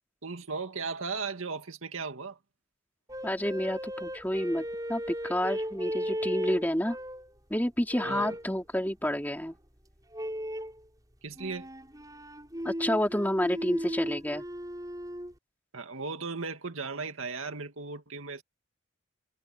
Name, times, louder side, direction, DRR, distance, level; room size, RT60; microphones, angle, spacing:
voice 1, 0.2-2.4 8.0-8.4 11.2-11.7 15.7-18.4, right 4 dB, 90° right, 2.3 m, -36 dB
sound 1, 3.1-7.3 7.9-8.5 10.1-10.8 11.4-15.3, equal, 20° right, 7.2 m, -36 dB
voice 2, 3.2-7.0 7.5-9.6 12.6-14.4, equal, 10° left, 3.5 m, -29 dB
head